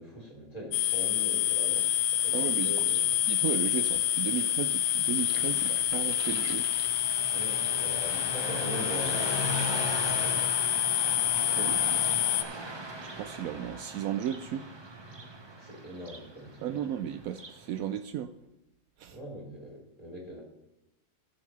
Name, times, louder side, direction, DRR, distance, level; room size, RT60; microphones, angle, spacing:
voice 1, 0.0-3.2 7.3-10.5 15.6-17.0 19.1-20.4, equal, 20° left, -3 dB, 3.2 m, -42 dB
sound 1, 0.7-12.4, left 13 dB, 65° left, 1.0 m, -28 dB
Car passing by, 1.7-17.6, right 1 dB, 25° right, 0.5 m, -39 dB
voice 2, 2.3-2.7 3.3-6.7 11.0-12.1 13.0-14.7 16.6-18.3 19.0-19.2, right 10 dB, 75° right, 9 dB, 0.8 m, -35 dB
sound 2, 5.0-8.5 8.9-9.1, right 4 dB, 45° right, 1.0 m, -48 dB
19.5 x 7.1 x 3.2 m, 0.91 s
omnidirectional pair, 2.0 m